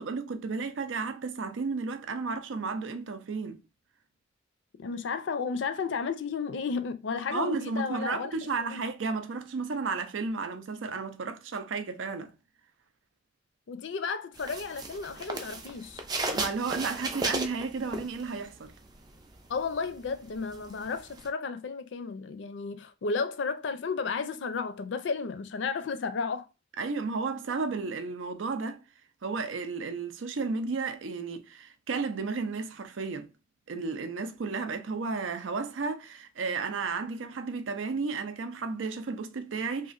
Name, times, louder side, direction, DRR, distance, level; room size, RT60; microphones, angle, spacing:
voice 1, 0.0-3.6 7.3-12.3 16.3-18.7 26.8-28.8 29.2-33.3 33.7-39.9, right 4 dB, 80° right, 0.5 m, -33 dB
voice 2, 4.8-8.3 8.7-8.8 13.7-16.0 19.5-26.5, left 5 dB, 70° left, 0.4 m, -33 dB
sound 1, 14.4-18.6 18.9-21.3, right 2 dB, 20° right, 0.4 m, -35 dB
2.9 x 2.5 x 2.4 m
head